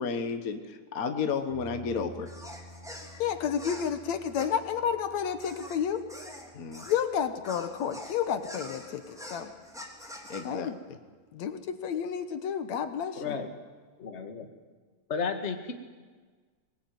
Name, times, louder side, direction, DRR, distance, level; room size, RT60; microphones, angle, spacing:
voice 1, 0.0-2.3 6.5-6.9 10.3-11.0, left 5 dB, 45° left, 7 dB, 1.1 m, -32 dB
sound 1, 1.5-9.6, left 1 dB, 50° right, 8.0 m, -53 dB
sound 2, 2.2-7.0 7.4-10.5, equal, ahead, 3.0 m, -45 dB
voice 2, 3.2-6.0 6.8-9.5 10.4-10.7 11.3-13.4, left 8 dB, 70° left, 9 dB, 2.4 m, -31 dB
voice 3, 13.1-13.5 14.0-14.5 15.1-15.7, left 5 dB, 25° left, 5 dB, 1.7 m, -33 dB
22.0 x 20.0 x 9.3 m, 1.4 s
omnidirectional pair, 3.4 m